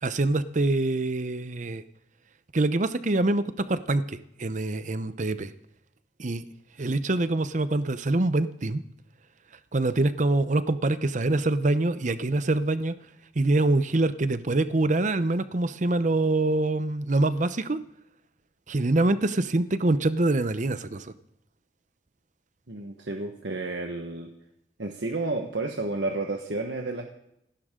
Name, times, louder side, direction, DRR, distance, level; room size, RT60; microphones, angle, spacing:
voice 1, 0.0-1.8 2.5-5.5 6.2-6.4 6.8-8.8 9.7-12.9 13.4-17.8 18.7-21.1, right 2 dB, 45° right, 13 dB, 0.7 m, -25 dB
voice 2, 22.7-24.3 24.8-27.0, right 2 dB, 75° right, 2 dB, 1.4 m, -31 dB
27.0 x 11.5 x 3.8 m, 0.82 s
head